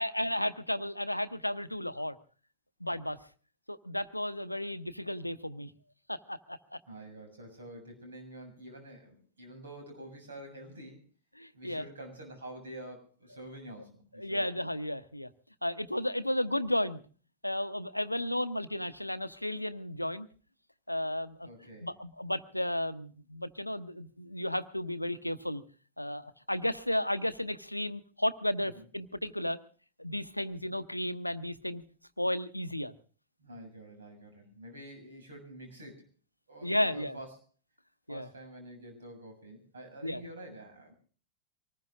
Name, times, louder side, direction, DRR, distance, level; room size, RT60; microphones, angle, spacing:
voice 1, 0.0-2.1 2.8-3.2 3.7-5.7 6.1-6.8 11.4-11.9 14.2-15.3 15.6-17.0 17.4-20.3 20.9-21.5 21.8-25.6 26.0-29.6 30.0-31.8 32.2-32.9 36.6-37.2 38.1-38.3 40.0-40.2, left 1 dB, 85° left, 12 dB, 0.7 m, -33 dB
voice 2, 6.9-11.0 11.5-14.5 21.4-21.9 28.6-28.9 33.4-36.1 36.5-37.3 38.1-40.9, right 1 dB, 70° right, 4 dB, 7.0 m, -47 dB
24.5 x 19.5 x 2.5 m, 0.40 s
figure-of-eight pair, 90°, 0 cm